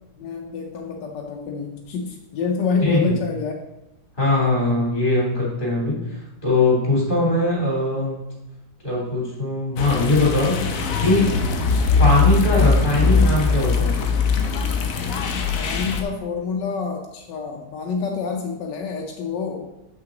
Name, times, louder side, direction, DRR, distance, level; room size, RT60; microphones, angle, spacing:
voice 1, 0.2-3.6 15.6-19.7, left 5 dB, 80° left, 2 dB, 1.3 m, -27 dB
voice 2, 2.8-3.1 4.2-8.2 8.8-11.3 12.0-13.9, left 2 dB, 25° left, -4 dB, 2.8 m, -21 dB
sound 1, 9.8-16.0, left 4 dB, 60° left, 1.0 m, -21 dB
7.2 x 5.8 x 3.8 m, 0.93 s
omnidirectional pair, 1.9 m